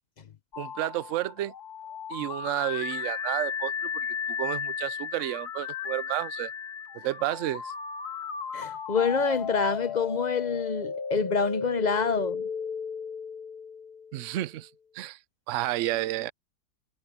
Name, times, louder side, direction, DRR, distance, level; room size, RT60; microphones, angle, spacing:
sound 1, 0.5-14.4, left 7 dB, 70° left, 1.9 m, -35 dB
voice 1, 0.6-1.5 2.1-6.5 7.0-7.7 14.1-14.7 14.9-15.2 15.5-16.3, right 15 dB, 65° right, 0.8 m, -31 dB
voice 2, 8.5-12.4, left 5 dB, 40° left, 0.6 m, -27 dB
omnidirectional pair, 1.8 m